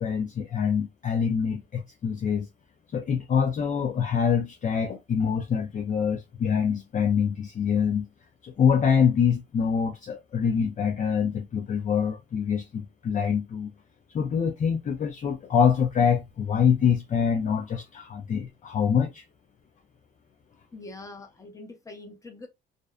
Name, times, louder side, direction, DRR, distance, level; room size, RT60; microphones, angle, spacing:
voice 1, 0.0-2.5 2.9-8.1 8.4-13.7 14.1-19.2, left 7 dB, 40° left, 0.4 m, -25 dB
voice 2, 20.7-22.5, left 2 dB, 15° left, 0.8 m, -43 dB
2.5 x 2.0 x 2.3 m
cardioid pair, 90°, 20 cm